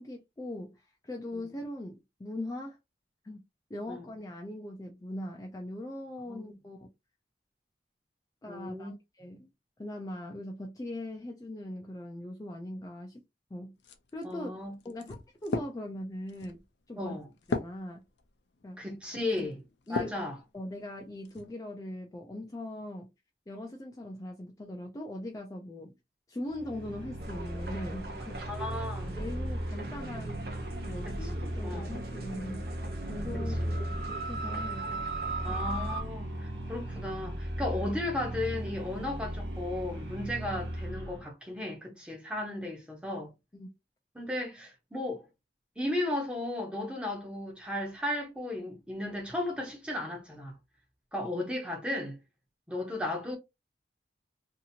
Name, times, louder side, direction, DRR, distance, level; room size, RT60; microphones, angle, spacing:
voice 1, 0.0-2.8 3.2-3.4 3.7-6.9 8.4-8.9 9.2-9.5 9.8-13.2 13.5-13.7 14.1-14.5 14.8-17.1 17.5-18.0 18.6-18.8 19.4-19.5 19.9-20.2 20.5-23.1 23.5-25.9 26.3-28.4 29.0-30.5 30.8-32.7 33.1-34.9 35.5-35.6 43.5-43.7, left 1 dB, 20° left, 0.3 m, -40 dB
voice 2, 8.5-8.9 14.2-14.7 17.0-17.3 18.8-19.6 19.9-20.4 28.4-29.2 31.0-31.3 31.6-31.9 33.3-33.8 35.4-43.3 44.1-45.2 45.8-50.5 51.1-52.2 52.7-53.4, left 1 dB, 5° right, 0.7 m, -35 dB
sound 1, 13.8-20.3 20.8-21.5, left 3 dB, 75° left, 0.5 m, -39 dB
sound 2, 26.5-41.3, right 1 dB, 90° right, 0.9 m, -37 dB
sound 3, 27.2-36.0, right 3 dB, 55° right, 0.6 m, -40 dB
2.8 x 2.5 x 2.7 m
head